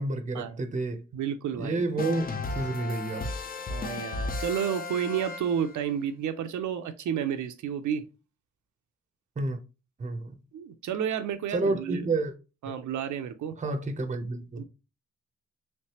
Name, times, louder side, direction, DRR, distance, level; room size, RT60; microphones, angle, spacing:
voice 1, 0.0-1.0 1.5-3.3 9.4-9.6 10.0-10.3 11.5-12.3 12.7-12.8 13.6-14.6, right 3 dB, 25° right, 0.5 m, -30 dB
voice 2, 1.1-1.8 3.7-8.1 10.5-12.1 12.6-13.6 14.6-14.7, right 8 dB, 85° right, 0.4 m, -31 dB
sound 1, 2.0-5.9, left 3 dB, 30° left, 0.4 m, -34 dB
3.2 x 3.2 x 2.8 m
wide cardioid pair, 115°, 29 cm